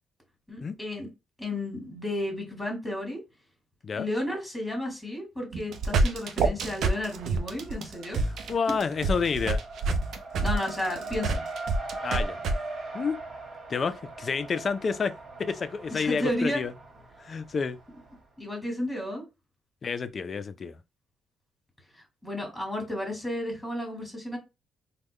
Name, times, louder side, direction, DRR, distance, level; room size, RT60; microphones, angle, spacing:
voice 1, 0.5-1.1 1.4-3.2 3.9-8.3 10.4-11.4 15.9-16.6 18.4-19.2 22.2-24.4, left 1 dB, ahead, 1.6 m, -32 dB
sound 1, 5.5-12.5, right 3 dB, 70° right, 0.5 m, -27 dB
Race car auto racing, 5.8-6.5 6.8-18.2, right 3 dB, 55° right, 1.7 m, -41 dB
voice 2, 8.5-9.6 12.0-12.4 12.9-13.2 13.7-16.7 17.2-17.8 19.8-20.8, left 5 dB, 45° left, 0.4 m, -29 dB
3.6 x 2.2 x 3.1 m
cardioid pair, 90°, 0 cm